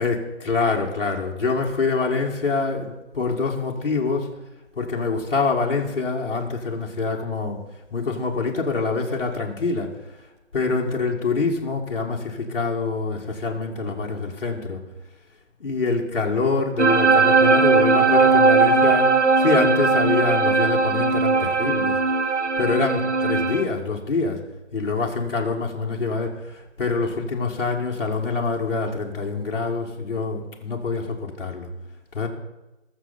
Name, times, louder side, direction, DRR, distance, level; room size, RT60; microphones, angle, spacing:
voice 1, 0.0-4.3 4.8-7.6 7.9-9.9 10.5-14.8 15.6-21.9 22.6-24.4 24.7-31.7 32.1-32.3, left 4 dB, 50° left, -1 dB, 1.8 m, -25 dB
sound 1, 16.8-23.6, right 4 dB, 75° right, 1.3 m, -18 dB
20.0 x 6.7 x 4.2 m, 1.0 s
figure-of-eight pair, 165°, 36 cm